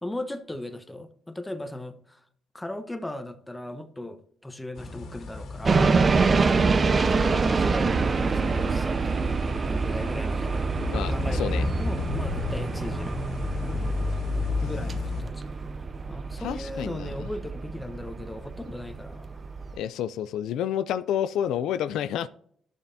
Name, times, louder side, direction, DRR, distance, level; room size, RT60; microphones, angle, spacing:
voice 1, 0.0-2.2 2.5-5.8 6.8-9.3 9.7-10.7 11.1-13.2 14.6-15.4 16.1-19.3, left 1 dB, 10° left, 1.0 m, -37 dB
sound 1, 4.8-15.2, left 3 dB, 65° left, 2.2 m, -33 dB
sound 2, 5.7-19.8, right 4 dB, 35° right, 0.5 m, -26 dB
voice 2, 10.9-11.7 16.4-17.3 19.8-22.3, left 10 dB, 85° left, 0.4 m, -29 dB
12.5 x 7.1 x 2.7 m
cardioid pair, 90°, 0 cm